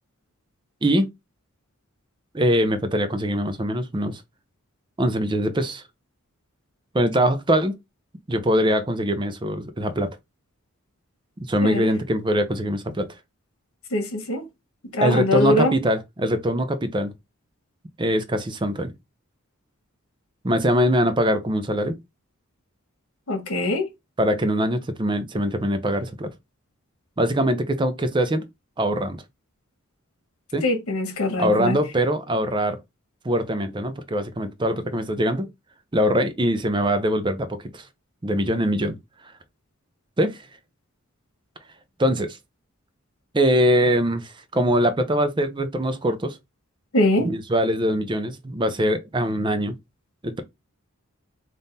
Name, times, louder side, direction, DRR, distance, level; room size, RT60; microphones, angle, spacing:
voice 1, 2.3-4.2 5.0-5.8 6.9-7.8 8.3-10.2 11.4-13.1 15.0-17.1 18.0-18.9 20.4-22.0 24.2-26.3 27.2-28.5 28.8-29.2 30.5-30.6 31.4-32.8 33.2-35.5 35.9-37.9 38.2-39.0 40.2-40.4 42.0-42.4 43.3-46.4 47.2-49.8 50.2-50.4, equal, 20° right, 0.5 m, -22 dB
voice 2, 13.9-14.4 14.9-15.7 23.3-23.9 30.6-31.8 46.9-47.3, left 1 dB, 80° left, 1.4 m, -22 dB
3.6 x 2.5 x 4.1 m
head